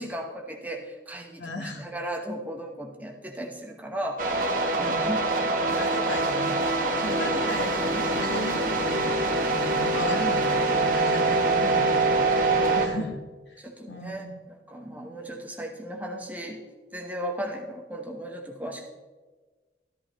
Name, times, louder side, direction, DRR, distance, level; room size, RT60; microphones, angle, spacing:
voice 1, 0.0-4.2 4.7-6.0 6.9-7.5 12.5-13.0 13.6-14.3 14.7-16.6 16.9-18.9, right 1 dB, 10° right, 1 dB, 1.0 m, -36 dB
voice 2, 1.4-1.9 4.7-5.2 5.8-13.2 13.5-14.3 14.8-15.1, left 1 dB, 80° left, 4 dB, 1.5 m, -37 dB
sound 1, 4.2-12.9, right 2 dB, 50° right, 1.3 m, -24 dB
13.5 x 13.0 x 3.1 m, 1.4 s
head